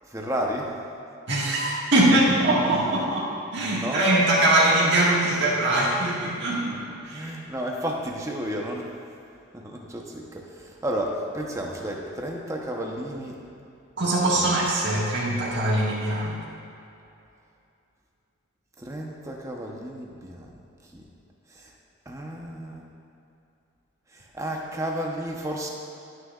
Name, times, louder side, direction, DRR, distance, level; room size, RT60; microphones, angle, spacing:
voice 1, 0.0-0.8 2.8-3.1 3.7-4.1 7.0-8.9 9.5-13.4 14.3-14.5 18.8-21.1 21.5-21.7 22.1-22.8 24.1-25.7, right 1 dB, 15° right, -1 dB, 0.8 m, -32 dB
voice 2, 1.3-3.2 3.5-7.3 14.0-16.4, right 1 dB, 55° right, -6 dB, 1.6 m, -22 dB
19.0 x 6.4 x 2.4 m, 2.7 s
head